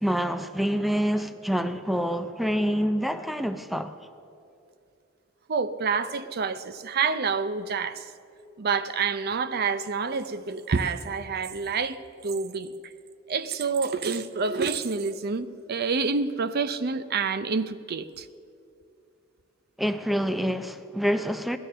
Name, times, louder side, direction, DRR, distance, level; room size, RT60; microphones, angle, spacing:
voice 1, 0.0-3.9 19.8-21.6, equal, ahead, 0.4 m, -26 dB
voice 2, 5.5-8.0 8.6-12.9 13.3-18.3, right 5 dB, 50° right, 0.5 m, -28 dB
17.5 x 12.0 x 6.6 m
head